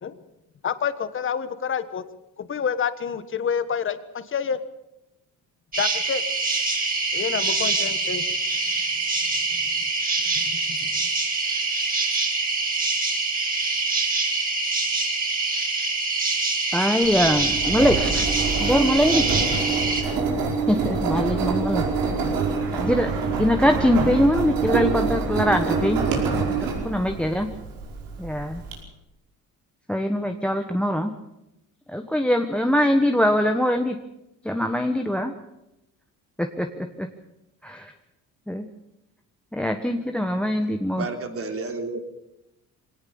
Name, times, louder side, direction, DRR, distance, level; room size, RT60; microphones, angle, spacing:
voice 1, 0.6-2.0 2.4-4.6 5.8-6.2 7.1-8.4 10.3-10.9, left 7 dB, 35° left, 12 dB, 1.4 m, -28 dB
sound 1, 5.7-20.0, right 3 dB, 25° right, 4.5 m, -25 dB
voice 2, 16.7-18.3 18.6-19.3 20.4-21.8 22.7-27.5 28.2-28.6 29.9-31.1 31.9-34.0 34.4-35.3 36.4-37.1 37.6-37.9 38.5-38.7 39.5-41.1, equal, 5° left, 6 dB, 1.2 m, -23 dB
Engine, 17.0-28.7, right 5 dB, 90° right, 5.3 m, -26 dB
voice 3, 40.7-42.0, right 3 dB, 40° right, 5 dB, 3.3 m, -32 dB
22.0 x 18.0 x 7.1 m, 0.89 s
cardioid pair, 110°, 34 cm